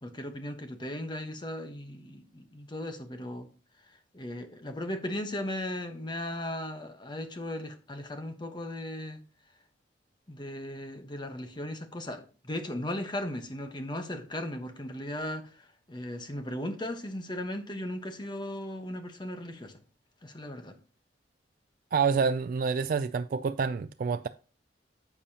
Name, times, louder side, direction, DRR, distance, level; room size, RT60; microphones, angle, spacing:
voice 1, 0.0-3.5 4.1-9.2 10.3-19.7 20.2-20.8, left 1 dB, 25° left, 1.1 m, -37 dB
voice 2, 21.9-24.3, right 5 dB, 50° right, 0.3 m, -27 dB
10.5 x 7.0 x 2.8 m
head